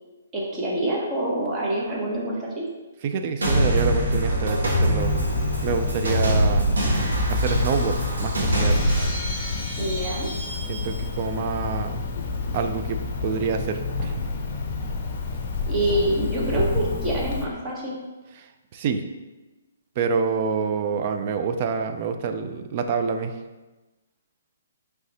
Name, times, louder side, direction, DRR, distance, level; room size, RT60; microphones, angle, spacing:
voice 1, 0.3-2.7 9.8-10.3 15.7-18.0, right 1 dB, 20° right, -4 dB, 0.9 m, -26 dB
voice 2, 3.0-5.2 5.6-6.7 7.3-8.8 10.7-12.0 12.5-14.3 18.4-19.0 20.0-23.4, right 5 dB, 40° right, 7 dB, 0.4 m, -27 dB
sound 1, 3.4-9.0, equal, 85° right, 1.4 m, -23 dB
Cricket, 5.0-17.4, left 4 dB, 45° left, 0.6 m, -30 dB
Shatter, 8.5-11.2, equal, 10° left, 0.9 m, -36 dB
4.7 x 3.2 x 2.8 m, 1.1 s
hypercardioid pair, 155°, 0 cm